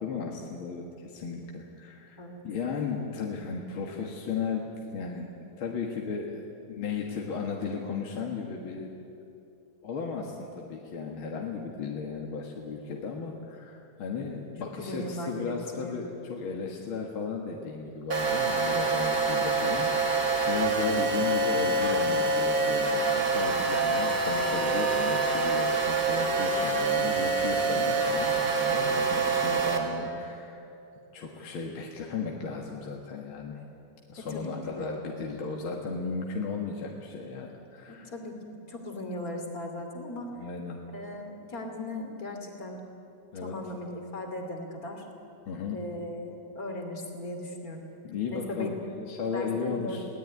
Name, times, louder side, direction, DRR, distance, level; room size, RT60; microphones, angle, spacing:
voice 1, 0.0-2.2 2.4-8.9 9.8-30.7 31.1-33.6 34.1-38.1 40.4-40.8 43.3-43.5 45.5-45.8 48.0-50.1, left 5 dB, 70° left, 0 dB, 2.5 m, -35 dB
voice 2, 14.8-15.6 15.8-16.0 34.2-34.9 37.9-40.4 40.9-42.8 43.3-45.0 45.7-47.8 48.3-48.7 49.3-50.0, left 1 dB, 40° left, 4 dB, 3.1 m, -38 dB
sound 1, 18.1-29.8, right 3 dB, 40° right, 2.4 m, -26 dB
21.5 x 18.0 x 9.6 m, 2.6 s
omnidirectional pair, 2.4 m